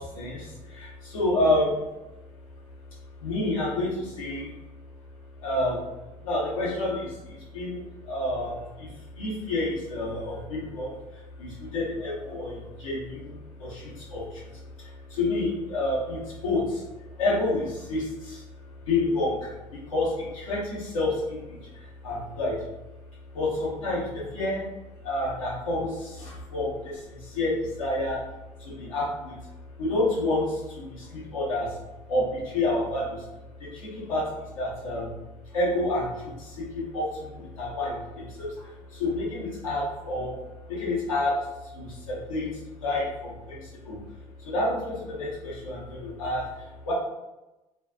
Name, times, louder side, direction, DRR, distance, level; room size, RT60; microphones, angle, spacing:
voice 1, 0.0-1.8 3.2-4.5 5.4-5.8 6.2-8.9 9.1-11.0 11.4-16.8 17.2-18.4 18.9-22.6 23.3-24.6 25.0-28.2 28.6-29.4 29.8-31.8 32.1-33.2 33.6-34.3 34.5-35.1 35.5-40.4 40.7-42.5 42.8-44.0 44.4-46.9, left 2 dB, 85° left, -6 dB, 0.9 m, -29 dB
2.6 x 2.3 x 2.4 m, 1.0 s
hypercardioid pair, 55°, 17 cm